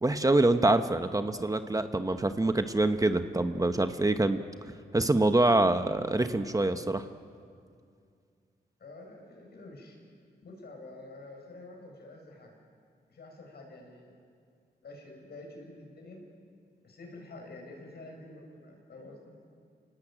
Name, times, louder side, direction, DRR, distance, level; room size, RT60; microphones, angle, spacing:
voice 1, 0.0-4.4 4.9-7.0, right 2 dB, 20° right, 8 dB, 1.0 m, -25 dB
voice 2, 8.8-10.0 10.4-12.6 13.1-14.1 14.8-16.2 16.8-19.3, left 2 dB, 65° left, 1 dB, 6.4 m, -48 dB
28.0 x 19.5 x 8.9 m, 2.2 s
wide cardioid pair, 95°, 18 cm